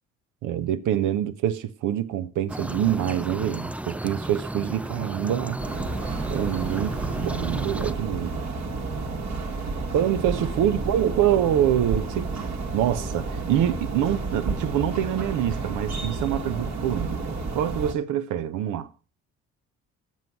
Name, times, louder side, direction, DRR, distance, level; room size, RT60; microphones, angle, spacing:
voice 1, 0.4-5.6 6.3-8.4 9.9-12.3 12.7-18.9, right 11 dB, 90° right, 0.8 m, -25 dB
sound 1, 2.5-7.9, right 1 dB, 5° right, 0.4 m, -33 dB
sound 2, 5.6-17.9, right 3 dB, 60° right, 1.9 m, -31 dB
7.4 x 6.3 x 7.1 m
cardioid pair, 90°, 30 cm